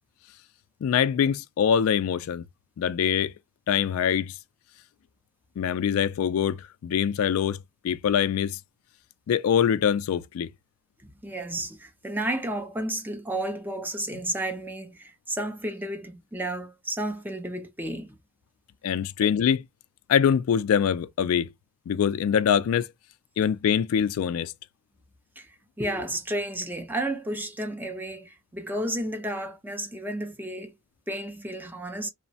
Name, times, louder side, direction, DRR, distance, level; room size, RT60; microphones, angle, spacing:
voice 1, 0.8-2.4 2.8-3.3 3.7-4.4 5.6-7.6 7.8-8.6 9.3-10.5 18.8-19.6 20.1-21.5 21.9-22.9 23.4-24.5, left 8 dB, 85° left, 0.3 m, -24 dB
voice 2, 11.0-18.2 19.2-19.3 25.4-30.7 31.1-32.1, right 1 dB, 10° right, 0.5 m, -32 dB
3.0 x 2.1 x 2.6 m
head